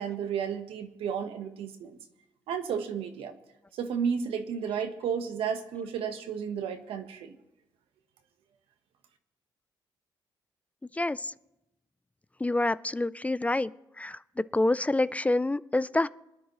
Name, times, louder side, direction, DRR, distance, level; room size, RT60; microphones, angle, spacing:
voice 1, 0.0-2.0 2.5-3.4 3.7-7.3, right 7 dB, 80° right, 7 dB, 1.1 m, -32 dB
voice 2, 11.0-11.3 12.4-13.7 14.0-14.2 14.5-16.1, left 2 dB, 15° left, 17 dB, 0.4 m, -27 dB
23.5 x 10.0 x 3.1 m, 0.90 s
supercardioid pair, 65°, 9 cm